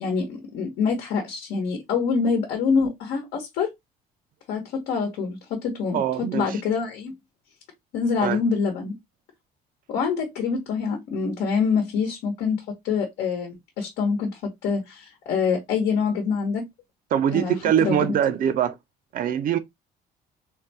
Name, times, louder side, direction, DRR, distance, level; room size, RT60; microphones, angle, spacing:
voice 1, 0.0-3.7 4.5-7.1 7.9-8.9 9.9-16.6 17.3-18.2, left 5 dB, 85° left, 1.0 m, -26 dB
voice 2, 5.9-6.6 8.2-8.4 17.1-18.7 19.1-19.6, right 9 dB, 55° right, 0.5 m, -23 dB
3.7 x 2.3 x 2.6 m
cardioid pair, 110°, 17 cm